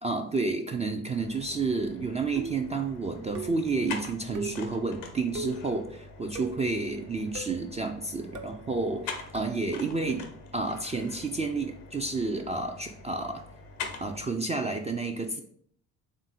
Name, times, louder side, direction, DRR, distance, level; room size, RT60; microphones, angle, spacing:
voice 1, 0.0-10.3 10.5-13.4 14.0-15.4, right 3 dB, 20° right, 3 dB, 0.3 m, -30 dB
sound 1, 1.1-14.3, left 4 dB, 85° left, 0.7 m, -44 dB
sound 2, 2.4-2.8 3.3-3.7 4.3-4.7 5.3-5.7 6.4-6.7 7.3-7.6 8.3-8.6 9.3-9.6, right 4 dB, 45° right, 0.8 m, -38 dB
3.5 x 2.5 x 4.1 m, 0.62 s
hypercardioid pair, 50°, 41 cm